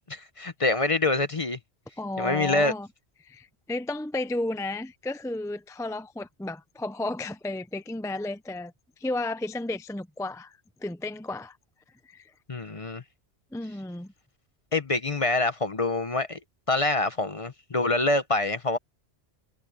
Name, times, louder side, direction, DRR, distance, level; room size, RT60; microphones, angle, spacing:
voice 1, 0.0-1.6 2.2-2.7 12.5-13.0 14.7-16.4 16.7-18.8, left 2 dB, 35° left, 0.9 m, -26 dB
voice 2, 2.0-2.9 3.2-8.7 9.0-10.6 10.8-11.6 12.1-12.3 13.5-14.1, left 2 dB, 5° left, 0.6 m, -33 dB
omnidirectional pair, 1.1 m